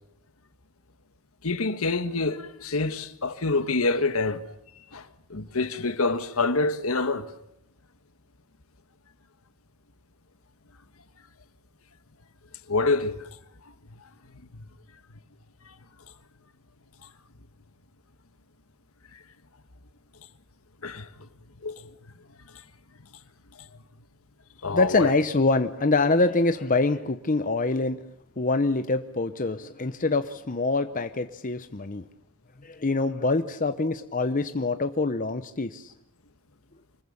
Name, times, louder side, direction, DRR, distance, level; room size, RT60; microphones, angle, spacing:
voice 1, 1.4-4.4 4.9-5.0 5.3-7.3 12.7-13.2 20.8-21.1 21.6-21.7 24.6-25.1, left 3 dB, 70° left, 1.5 m, -26 dB
voice 2, 24.7-28.0 28.4-32.0 32.6-35.9, left 3 dB, 35° left, 0.9 m, -25 dB
25.0 x 21.0 x 7.2 m
head